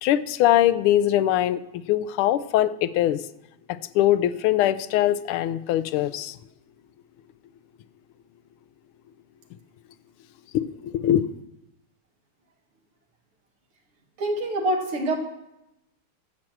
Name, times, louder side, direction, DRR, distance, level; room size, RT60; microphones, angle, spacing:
voice 1, 0.0-3.2 3.7-6.4 10.5-11.2, left 12 dB, 80° left, 14 dB, 1.4 m, -22 dB
voice 2, 14.2-15.2, right 1 dB, 80° right, 2 dB, 2.6 m, -25 dB
12.0 x 6.2 x 7.6 m, 0.89 s
omnidirectional pair, 2.4 m